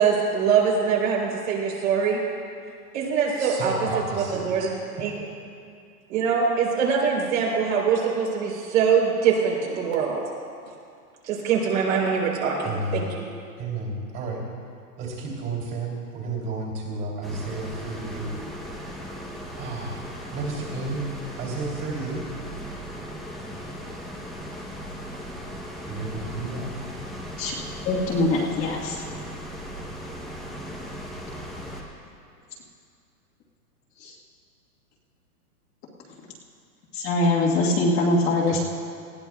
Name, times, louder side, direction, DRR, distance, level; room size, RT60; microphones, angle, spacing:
voice 1, 0.0-2.2 2.9-3.7 4.1-4.7 5.0-5.1 6.1-10.2 11.3-13.2, right 6 dB, 55° right, -2 dB, 3.9 m, -23 dB
voice 2, 3.4-4.5 4.9-5.0 12.6-13.1 13.6-14.4 15.0-18.7 19.6-22.2 25.9-26.7 38.5-38.6, right 3 dB, 25° right, -2 dB, 3.1 m, -32 dB
sound 1, 17.2-31.8, equal, ahead, 0.8 m, -37 dB
voice 3, 27.8-29.0 34.0-34.1 36.9-38.6, left 2 dB, 25° left, -4 dB, 1.6 m, -23 dB
19.5 x 16.0 x 2.4 m, 2.4 s
hypercardioid pair, 145°, 47 cm